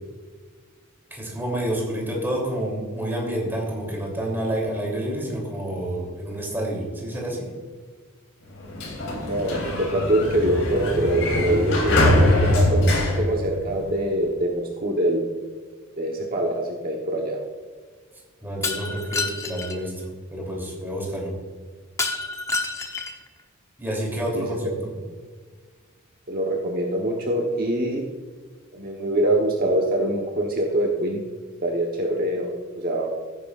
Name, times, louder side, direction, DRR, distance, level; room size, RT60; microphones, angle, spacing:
voice 1, 1.1-7.5 18.4-19.9 20.3-21.3 23.8-24.7, right 1 dB, 10° right, -2 dB, 3.1 m, -28 dB
Sliding door, 8.5-14.1, left 1 dB, 60° left, 3.4 m, -22 dB
voice 2, 9.2-15.2 16.0-17.4 24.3-24.7 26.3-28.0 28.7-31.2 31.6-33.1, right 1 dB, 45° right, -1 dB, 1.1 m, -24 dB
Shatter, 18.6-19.8 22.0-23.3, left 3 dB, 15° left, 0.9 m, -28 dB
16.0 x 9.7 x 2.5 m, 1.5 s
head